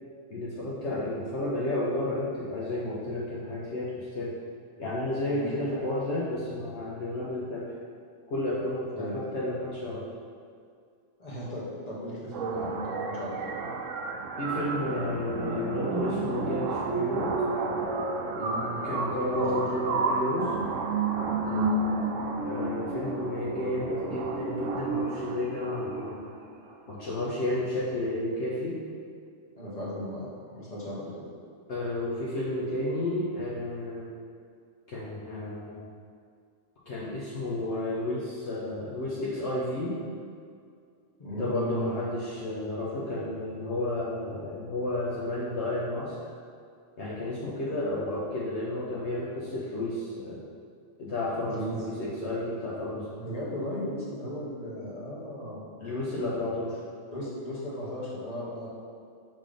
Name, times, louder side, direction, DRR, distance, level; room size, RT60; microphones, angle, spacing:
voice 1, 0.3-4.3 4.8-7.7 8.3-10.0 14.4-17.4 18.8-20.5 22.4-26.3 26.9-28.8 31.7-34.1 34.9-35.9 36.9-40.0 41.3-46.2 47.0-50.4 51.0-53.1 55.8-56.8, left 1 dB, 65° left, -7 dB, 1.1 m, -31 dB
voice 2, 11.2-13.4 18.4-18.8 19.3-19.7 21.4-21.7 29.5-31.3 41.2-41.9 51.4-51.8 53.1-55.6 57.1-58.7, equal, 30° left, -6 dB, 1.5 m, -36 dB
sound 1, 12.3-26.3, right 3 dB, 80° right, 1.0 m, -31 dB
5.5 x 3.5 x 5.2 m, 2.3 s
omnidirectional pair, 1.3 m